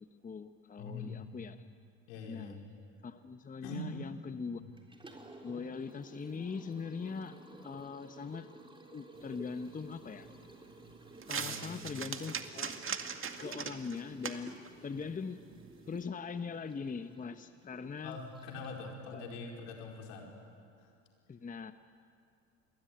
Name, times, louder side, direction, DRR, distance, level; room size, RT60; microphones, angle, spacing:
voice 1, 0.0-1.6 2.3-2.6 3.0-4.6 5.4-8.5 8.9-10.3 11.3-13.0 13.4-14.6 14.8-15.4 15.9-18.2 19.1-19.2 21.3-21.7, left 5 dB, 20° left, 10 dB, 1.1 m, -41 dB
voice 2, 0.8-1.3 2.1-2.6 3.6-4.1 4.6-4.7 11.4-11.9 18.0-20.3, left 3 dB, 70° left, 1 dB, 4.9 m, -43 dB
Liquid, 4.8-18.9, right 2 dB, 15° right, 3.7 m, -54 dB
sound 1, 9.2-16.0, right 6 dB, 30° right, 2.1 m, -43 dB
28.0 x 21.5 x 9.5 m, 2.4 s
hypercardioid pair, 65°, 39 cm